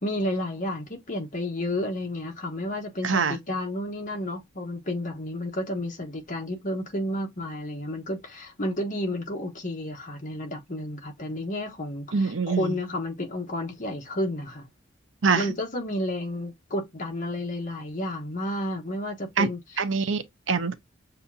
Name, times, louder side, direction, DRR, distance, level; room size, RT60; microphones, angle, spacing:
voice 1, 0.0-14.7 15.3-19.8, left 1 dB, 45° left, 1.2 m, -31 dB
voice 2, 3.0-3.4 12.1-12.7 15.2-15.4 19.4-19.5 19.8-20.8, right 5 dB, 70° right, 0.6 m, -24 dB
6.7 x 2.5 x 2.7 m
head